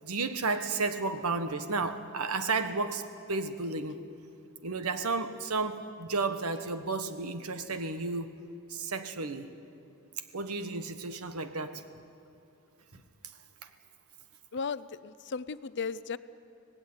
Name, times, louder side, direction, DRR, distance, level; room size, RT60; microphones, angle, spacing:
voice 1, 0.0-3.0 3.3-4.0 4.6-8.3 8.7-9.5 10.3-11.8, right 3 dB, 85° right, 9 dB, 1.4 m, -32 dB
voice 2, 14.5-16.2, left 5 dB, 55° left, 15 dB, 0.6 m, -35 dB
25.0 x 18.0 x 9.7 m, 2.7 s
head